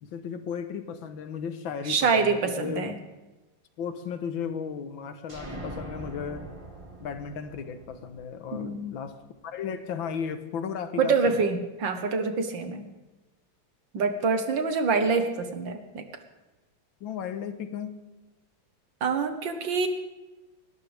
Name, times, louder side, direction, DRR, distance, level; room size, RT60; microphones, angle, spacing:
voice 1, 0.0-2.9 3.8-6.5 7.0-11.5 17.0-17.9, left 7 dB, 85° left, 9 dB, 1.9 m, -35 dB
voice 2, 1.9-3.0 8.5-8.9 11.0-12.8 13.9-16.0 19.0-19.9, right 4 dB, 70° right, 7 dB, 2.0 m, -26 dB
sound 1, 5.3-9.0, right 1 dB, 15° right, 1.8 m, -42 dB
19.5 x 18.0 x 3.5 m, 1.1 s
omnidirectional pair, 2.1 m